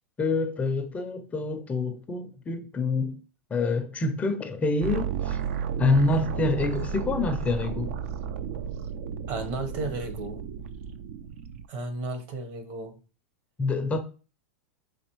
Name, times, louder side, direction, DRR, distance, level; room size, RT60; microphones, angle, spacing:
voice 1, 0.2-3.2 3.5-5.4 5.8-7.9 13.6-14.0, left 3 dB, 20° left, 0.4 m, -26 dB
sound 1, 4.8-11.6, right 7 dB, 65° right, 0.4 m, -33 dB
voice 2, 9.3-10.4 11.7-12.9, right 2 dB, 50° right, 1.1 m, -33 dB
4.1 x 2.7 x 3.0 m
hypercardioid pair, 130°, 8 cm